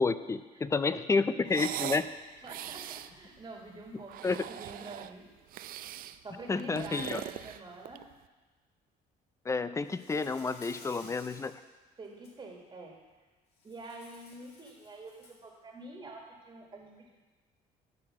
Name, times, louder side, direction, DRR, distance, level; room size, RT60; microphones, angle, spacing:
voice 1, 0.0-2.1 4.2-4.4 6.5-7.2 9.5-11.5, left 4 dB, 15° left, 13 dB, 0.4 m, -30 dB
sound 1, 1.5-2.1 2.4-3.1 4.0-5.1 5.5-6.2 6.6-8.1, right 13 dB, 60° right, 0.4 m, -40 dB
voice 2, 2.1-5.3 6.2-8.0 12.0-13.0 13.6-17.1, right 2 dB, 25° right, 0 dB, 1.7 m, -47 dB
Insect, 9.8-11.6 12.0-12.3 13.6-15.5, left 3 dB, 70° left, 2.0 m, -54 dB
12.0 x 4.8 x 6.3 m, 1.2 s
cardioid pair, 110°, 17 cm